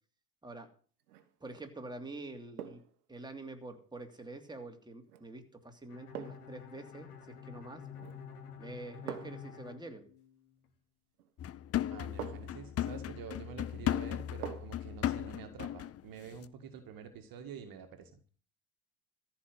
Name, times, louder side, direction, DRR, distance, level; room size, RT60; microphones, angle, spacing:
sound 1, 1.0-1.4 2.6-3.0 5.1-5.3 6.1-6.6 7.9-8.3 9.1-9.5 11.2-11.3 12.2-12.7 14.4-14.9 15.3-15.4, right 10 dB, 85° right, 1.5 m, -44 dB
voice 1, 1.4-2.8 3.1-7.8 8.6-10.0, right 2 dB, 10° right, 4 dB, 2.8 m, -46 dB
Bowed string instrument, 5.9-10.7, left 7 dB, 80° left, 2.3 m, -49 dB
sound 2, 11.4-16.0 16.3-16.5, left 11 dB, 35° left, 0.6 m, -36 dB
voice 2, 11.9-18.2, right 7 dB, 50° right, 8 dB, 2.0 m, -48 dB
14.0 x 5.9 x 9.3 m, 0.43 s
hypercardioid pair, 70°, 44 cm